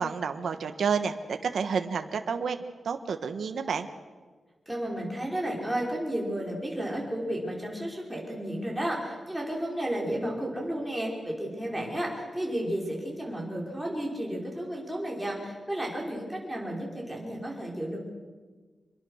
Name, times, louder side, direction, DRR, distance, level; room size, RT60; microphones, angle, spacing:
voice 1, 0.0-2.6 2.8-3.9, right 6 dB, 70° right, 7 dB, 1.3 m, -30 dB
voice 2, 4.7-18.0, right 1 dB, 5° right, -2 dB, 5.2 m, -32 dB
27.0 x 22.5 x 6.5 m, 1.4 s
wide cardioid pair, 165°, 0 cm